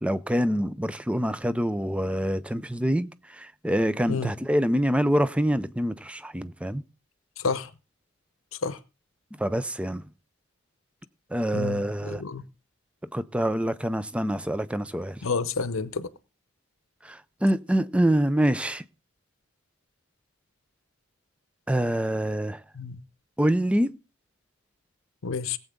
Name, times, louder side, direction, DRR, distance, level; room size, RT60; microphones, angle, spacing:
voice 1, 0.0-3.1 3.6-6.8 9.4-10.0 11.3-12.2 13.1-15.1 17.1-18.8 21.7-22.6 23.4-23.9, equal, 5° right, 0.5 m, -25 dB
voice 2, 11.5-12.4 15.2-16.1 22.8-23.0 25.2-25.6, left 4 dB, 75° left, 0.7 m, -29 dB
18.0 x 8.0 x 3.7 m
head